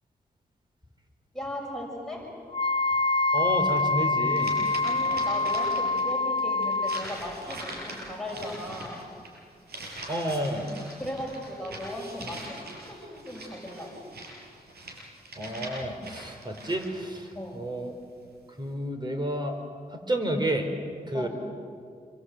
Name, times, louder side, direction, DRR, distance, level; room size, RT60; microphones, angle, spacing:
voice 1, 1.3-2.3 4.8-9.0 11.0-14.0 17.3-17.6 21.1-21.3, left 1 dB, 5° left, -2 dB, 6.6 m, -37 dB
Wind instrument woodwind instrument, 2.5-7.1, left 2 dB, 35° left, 0.6 m, -25 dB
voice 2, 3.3-4.6 10.1-10.7 15.4-17.9 18.6-19.6 19.9-20.7 21.1-21.3, right 1 dB, 30° right, 4 dB, 4.8 m, -30 dB
sound 1, 4.4-6.1 6.4-17.2, right 1 dB, 85° right, 6.1 m, -42 dB
27.5 x 24.5 x 8.2 m, 2.1 s
cardioid pair, 70°, 16 cm